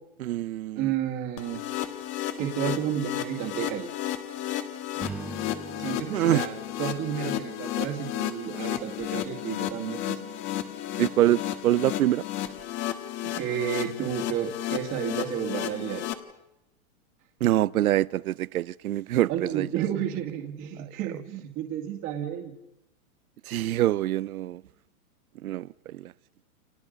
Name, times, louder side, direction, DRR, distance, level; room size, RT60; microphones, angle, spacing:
voice 1, 0.2-0.9 6.1-6.4 11.0-12.2 17.4-19.7 23.5-24.6 25.4-26.1, right 14 dB, 80° right, 0.8 m, -25 dB
voice 2, 0.8-1.6 2.4-3.9 5.8-10.3 13.2-16.0 19.3-22.5, right 10 dB, 30° right, 2.2 m, -31 dB
sound 1, 1.4-16.1, left 12 dB, 25° left, 1.5 m, -33 dB
Strum, 5.0-9.4, right 3 dB, 5° right, 1.3 m, -44 dB
30.0 x 28.0 x 5.3 m
supercardioid pair, 160°, 43 cm